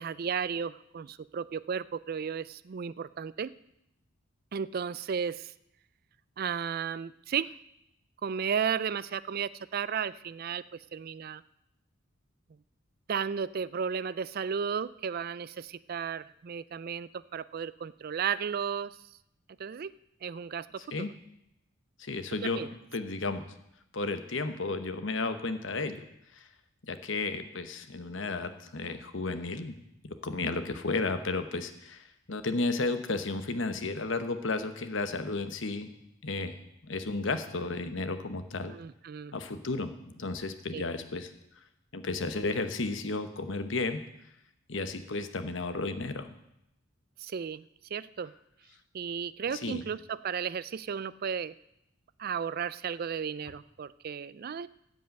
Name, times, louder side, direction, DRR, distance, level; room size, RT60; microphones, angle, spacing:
voice 1, 0.0-3.5 4.5-5.5 6.4-7.6 8.2-11.4 13.1-18.9 19.6-19.9 20.2-20.9 22.4-22.7 38.7-39.4 40.7-40.8 47.2-47.6 47.9-48.3 48.9-51.5 52.2-54.7, right 7 dB, 45° right, 17 dB, 0.4 m, -34 dB
voice 2, 22.0-23.5 23.9-26.0 26.3-26.5 26.8-29.7 30.0-35.9 36.2-36.6 36.8-38.7 39.3-41.3 41.9-44.0 44.7-46.3 49.5-49.8, left 3 dB, 65° left, 9 dB, 1.1 m, -33 dB
15.0 x 5.4 x 8.9 m, 0.82 s
head